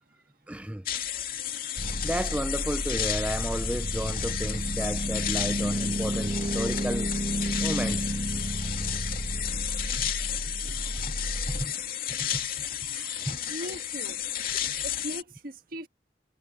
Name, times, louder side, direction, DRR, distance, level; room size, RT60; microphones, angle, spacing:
voice 1, 0.5-0.9 2.0-7.1 7.6-8.1 10.0-10.1 11.5-11.7 12.2-12.3 13.3-13.4, right 1 dB, 5° right, 0.5 m, -33 dB
sound 1, 0.9-15.2, left 10 dB, 50° left, 2.5 m, -32 dB
sound 2, 1.8-11.6, right 1 dB, 35° right, 1.7 m, -32 dB
sound 3, 2.9-10.1, equal, 25° left, 5.1 m, -50 dB
voice 2, 12.2-14.2 14.8-15.9, equal, 50° right, 1.6 m, -41 dB
head